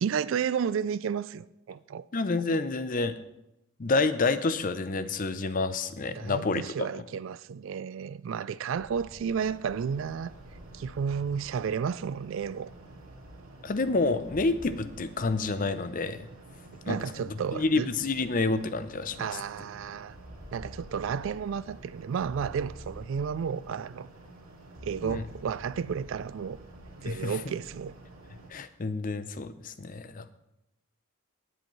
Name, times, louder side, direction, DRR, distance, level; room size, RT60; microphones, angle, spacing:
voice 1, 0.0-2.0 6.1-10.3 10.7-12.7 16.9-17.9 19.2-20.2 20.5-24.1 24.8-26.6 27.0-27.9, right 7 dB, 60° right, 0.3 m, -32 dB
voice 2, 2.1-3.1 3.8-6.6 6.9-7.0 13.6-16.3 16.9-17.1 17.5-19.4 25.0-25.3 27.1-27.4 28.5-30.3, left 3 dB, 40° left, 0.6 m, -28 dB
sound 1, 8.6-12.2 14.0-16.2 16.5-16.6 17.4-17.5 18.0-18.2 19.8-24.0 24.6-28.0, equal, 5° right, 3.1 m, -50 dB
sound 2, 9.3-28.5, right 2 dB, 90° right, 2.1 m, -50 dB
19.0 x 7.8 x 3.1 m
head